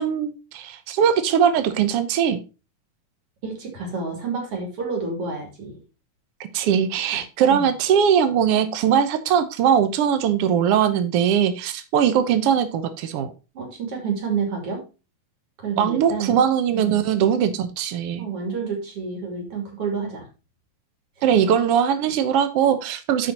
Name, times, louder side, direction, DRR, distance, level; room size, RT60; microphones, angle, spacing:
voice 1, 0.0-2.4 6.5-13.3 15.8-18.2 21.2-23.3, right 8 dB, 80° right, 9 dB, 1.3 m, -20 dB
voice 2, 3.4-5.8 7.1-7.2 7.5-7.7 13.5-14.8 15.6-16.4 16.7-17.0 18.2-20.3, right 5 dB, 45° right, 1 dB, 3.7 m, -29 dB
13.0 x 5.3 x 2.8 m, 0.31 s
omnidirectional pair, 3.8 m